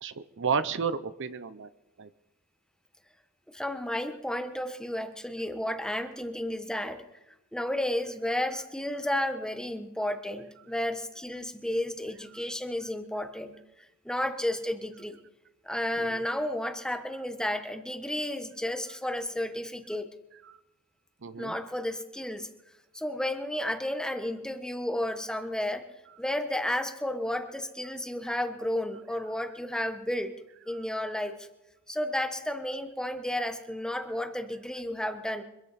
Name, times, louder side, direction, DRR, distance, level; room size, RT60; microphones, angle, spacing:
voice 1, 0.0-1.7 2.0-2.1 16.0-16.2 21.2-21.6 30.7-30.8, right 5 dB, 55° right, 13 dB, 0.7 m, -32 dB
voice 2, 3.5-7.0 7.5-13.6 14.0-15.2 15.6-20.1 21.4-22.5 22.9-25.8 26.2-30.3 30.7-31.5 31.9-35.4, left 1 dB, 5° left, 7 dB, 1.1 m, -32 dB
25.0 x 13.5 x 4.2 m, 0.93 s
head